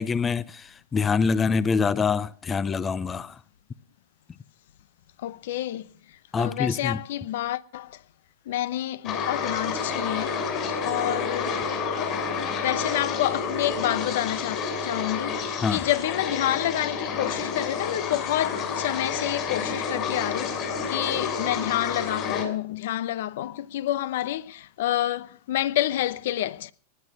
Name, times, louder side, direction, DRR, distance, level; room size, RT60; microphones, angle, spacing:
voice 1, 0.0-3.4 6.3-7.0 15.6-15.8, left 5 dB, 20° left, 0.6 m, -25 dB
voice 2, 5.2-5.9 6.4-8.0 8.5-10.5 10.8-11.6 12.0-12.2 12.6-26.7, left 13 dB, 70° left, 0.8 m, -28 dB
sound 1, 9.0-22.4, left 5 dB, 40° left, 7.1 m, -29 dB
19.0 x 11.0 x 6.2 m
hypercardioid pair, 120°, 0 cm